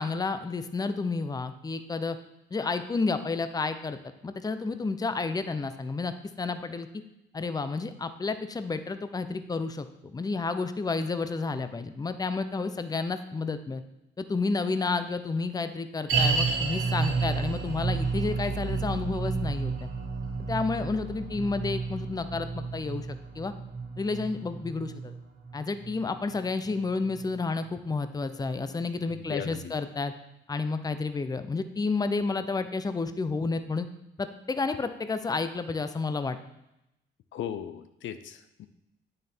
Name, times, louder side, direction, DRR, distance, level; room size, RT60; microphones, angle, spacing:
voice 1, 0.0-2.2 2.5-4.0 4.2-6.9 7.3-13.8 14.2-19.7 20.5-23.5 24.0-25.1 25.5-30.1 30.5-33.9 34.2-36.4, left 4 dB, 20° left, 10 dB, 0.6 m, -31 dB
sound 1, 16.1-27.4 27.6-27.7 28.4-28.5, right 4 dB, 85° right, 2.7 m, -31 dB
voice 2, 29.3-29.7 37.3-38.7, left 9 dB, 70° left, 10 dB, 0.6 m, -37 dB
8.7 x 6.5 x 4.4 m, 0.86 s
cardioid pair, 90°, 20 cm